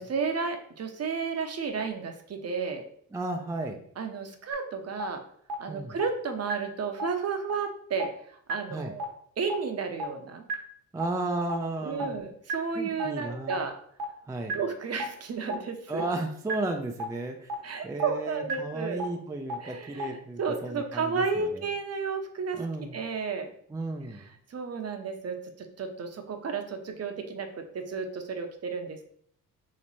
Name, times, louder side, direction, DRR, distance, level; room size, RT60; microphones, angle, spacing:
voice 1, 0.0-2.8 4.0-5.2 5.6-8.1 8.5-9.1 9.4-10.4 11.8-13.8 14.5-16.0 17.6-19.0 19.6-23.5 24.1-29.1, right 5 dB, 40° right, 6 dB, 0.7 m, -32 dB
voice 2, 3.1-3.8 5.7-6.0 8.7-8.9 10.9-12.2 12.7-13.6 14.3-14.5 15.9-17.5 17.8-21.6 22.5-23.0 23.7-24.3, right 2 dB, 10° right, 3 dB, 0.4 m, -34 dB
sound 1, 4.5-4.6 5.0-5.1 5.5-5.6 6.0-6.1 6.5-6.6 7.0-7.1 7.5-7.6 8.0-8.1 8.5-8.6 9.0-9.1 9.5-9.6 10.0-10.1 10.5-10.6 11.0-11.1 11.5-11.6 12.0-12.1 12.5-12.6 13.0-13.1 13.5-13.6 14.0-14.1 14.5-14.6 15.0-15.1 15.5-15.6 16.0-16.1 16.5-16.6 17.0-17.1 17.5-17.6 18.0-18.1 18.5-18.6 19.0-19.1 19.5-19.6 20.0-20.1, right 2 dB, 70° right, 1.1 m, -30 dB
3.2 x 3.1 x 4.0 m, 0.64 s
cardioid pair, 85°, 39 cm